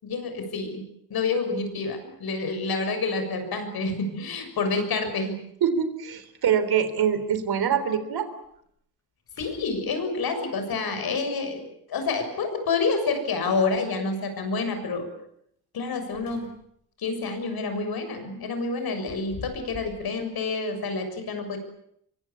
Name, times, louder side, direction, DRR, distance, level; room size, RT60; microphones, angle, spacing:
voice 1, 0.0-0.8 1.1-5.4 9.4-15.1 15.7-16.5 17.0-21.6, left 4 dB, 70° left, 7 dB, 7.0 m, -28 dB
sound 1, 5.3-5.4 5.8-5.9 6.1-6.7 7.3-7.4 7.9-8.0 8.4-8.8 9.2-10.3 12.4-13.1 15.8-16.9 17.2-17.5 18.7-20.1, left 4 dB, 45° left, 7.4 m, -47 dB
voice 2, 5.6-8.3, right 8 dB, 75° right, 11 dB, 3.8 m, -24 dB
25.5 x 23.5 x 8.7 m, 0.71 s
cardioid pair, 130°, 38 cm